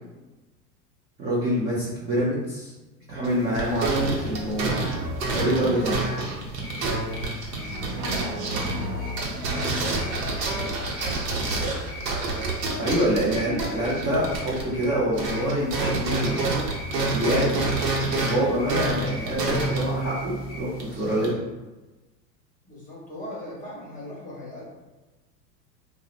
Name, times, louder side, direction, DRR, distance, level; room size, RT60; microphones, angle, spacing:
voice 1, 1.2-2.7 3.1-4.9 5.3-6.0 12.8-16.4 17.1-17.6 18.2-21.4, equal, 20° right, -8 dB, 0.4 m, -26 dB
sound 1, 3.2-14.9 15.1-21.3, right 3 dB, 80° right, 0.8 m, -28 dB
Drum, 4.9-6.4 7.5-10.5, equal, 50° right, 0.7 m, -34 dB
sound 2, 6.6-20.6, equal, 45° left, 0.7 m, -41 dB
voice 2, 6.9-7.3 8.0-11.8 12.6-13.1 22.6-24.6, left 1 dB, 15° left, -5 dB, 0.8 m, -41 dB
2.7 x 2.0 x 2.3 m, 1.1 s
hypercardioid pair, 100°, 49 cm